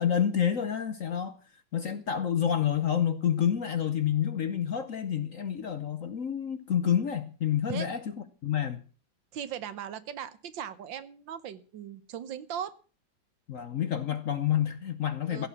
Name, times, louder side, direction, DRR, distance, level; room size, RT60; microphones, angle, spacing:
voice 1, 0.0-1.4 1.7-8.0 8.4-8.8 13.5-15.5, left 9 dB, 55° left, 12 dB, 1.0 m, -28 dB
voice 2, 9.3-12.8 15.3-15.5, right 9 dB, 70° right, 14 dB, 1.7 m, -38 dB
16.0 x 7.2 x 7.1 m, 0.37 s
omnidirectional pair, 2.2 m